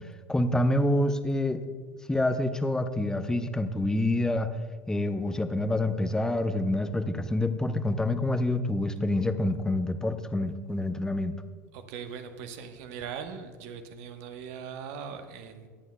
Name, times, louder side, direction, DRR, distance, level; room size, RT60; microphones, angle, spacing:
voice 1, 0.3-1.6 2.1-4.5 4.9-11.3, left 1 dB, 5° left, 10 dB, 0.7 m, -27 dB
voice 2, 11.7-15.7, right 7 dB, 55° right, 7 dB, 1.1 m, -40 dB
20.5 x 9.3 x 2.2 m, 1.5 s
figure-of-eight pair, 80°, 9 cm